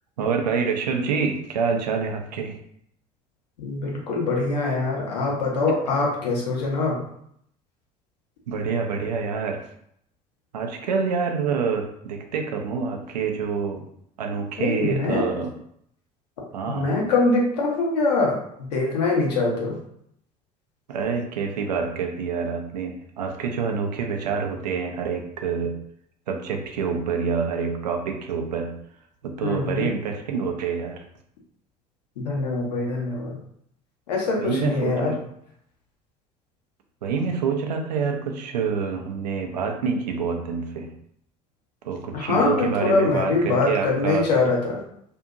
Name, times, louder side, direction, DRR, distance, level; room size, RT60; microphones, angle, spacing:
voice 1, 0.2-2.6 8.5-9.6 10.5-13.8 14.2-15.5 16.5-16.9 20.9-25.8 26.3-28.7 29.2-31.0 34.4-35.2 37.0-40.9 41.8-44.3, right 5 dB, 75° right, 4 dB, 0.5 m, -27 dB
voice 2, 3.6-7.0 14.6-15.2 16.7-19.8 29.4-29.9 32.2-33.4 34.1-35.2 42.1-44.8, left 3 dB, 75° left, -2 dB, 0.9 m, -23 dB
2.7 x 2.6 x 2.5 m, 0.70 s
figure-of-eight pair, 65°, 21 cm